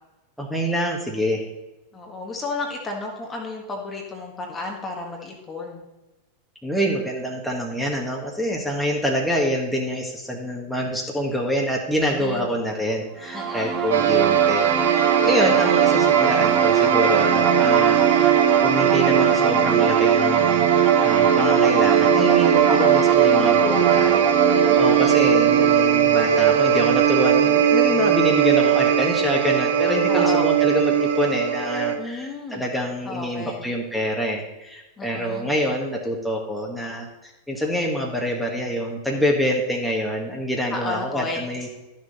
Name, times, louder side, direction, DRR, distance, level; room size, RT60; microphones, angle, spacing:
voice 1, 0.4-1.4 6.6-18.3 18.6-20.7 21.0-41.7, equal, ahead, -1 dB, 1.7 m, -26 dB
voice 2, 1.9-5.9 12.1-12.5 13.3-13.8 22.6-23.1 24.7-25.2 30.1-30.5 32.0-32.7 33.0-33.6 35.0-35.5 40.7-41.5, left 2 dB, 20° left, 0 dB, 1.6 m, -32 dB
sound 1, 13.3-26.8, right 8 dB, 35° right, 1.2 m, -22 dB
sound 2, 13.9-32.0, right 8 dB, 60° right, 1.0 m, -19 dB
12.5 x 6.5 x 4.2 m, 1.1 s
figure-of-eight pair, 90°, 0 cm